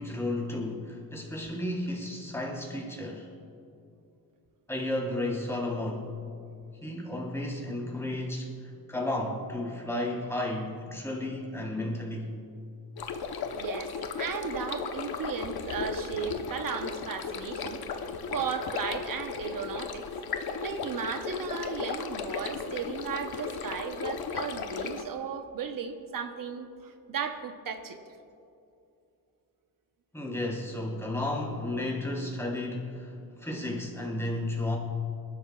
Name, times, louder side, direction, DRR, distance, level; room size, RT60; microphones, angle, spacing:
voice 1, 0.0-3.3 4.7-6.1 6.8-12.3 30.1-34.8, left 1 dB, 5° left, -4 dB, 3.7 m, -33 dB
sound 1, 13.0-25.0, left 5 dB, 75° left, 1.0 m, -35 dB
voice 2, 13.5-17.8 18.3-20.1 20.6-28.0, right 6 dB, 60° right, 6 dB, 1.0 m, -35 dB
28.0 x 12.5 x 2.4 m, 2.6 s
wide cardioid pair, 135°, 38 cm